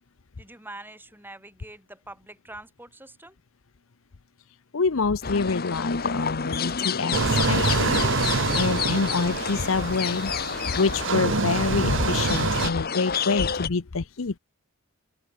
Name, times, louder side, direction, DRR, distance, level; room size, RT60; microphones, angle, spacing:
voice 1, 0.4-3.4, right 2 dB, 10° right, 7.5 m, -44 dB
voice 2, 4.7-14.4, left 4 dB, 65° left, 0.7 m, -27 dB
sound 1, 5.2-13.7, left 6 dB, 45° left, 1.2 m, -30 dB
sound 2, 7.1-12.7, right 3 dB, 60° right, 1.3 m, -26 dB
open air
head